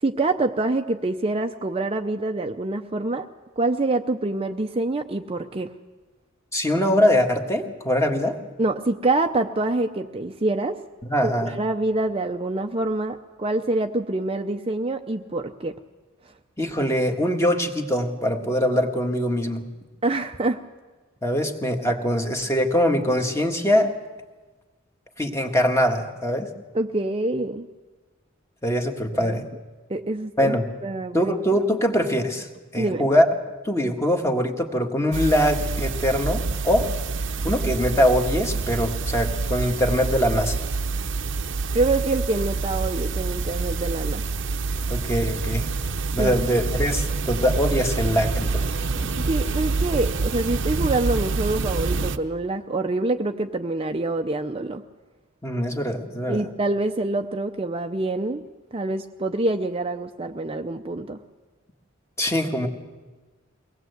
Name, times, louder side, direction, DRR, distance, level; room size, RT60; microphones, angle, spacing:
voice 1, 0.0-3.3 3.6-5.7 8.6-10.8 11.2-15.7 20.0-20.6 26.7-27.7 29.2-29.3 29.9-30.6 30.8-31.6 32.8-33.1 41.7-44.2 46.2-46.4 48.9-54.8 56.3-58.4 58.7-61.2, right 2 dB, 25° right, 6 dB, 0.6 m, -26 dB
voice 2, 6.5-8.4 11.0-11.5 16.6-19.6 21.2-23.9 25.2-26.5 28.6-29.4 30.4-30.7 31.1-32.5 32.7-33.3 33.6-36.9 37.4-40.6 44.9-45.7 46.1-48.7 55.4-56.4 62.2-62.7, equal, 15° left, 4 dB, 1.5 m, -22 dB
sound 1, 35.1-52.2, right 3 dB, 60° right, 0.8 m, -27 dB
23.0 x 18.5 x 8.0 m, 1.3 s
head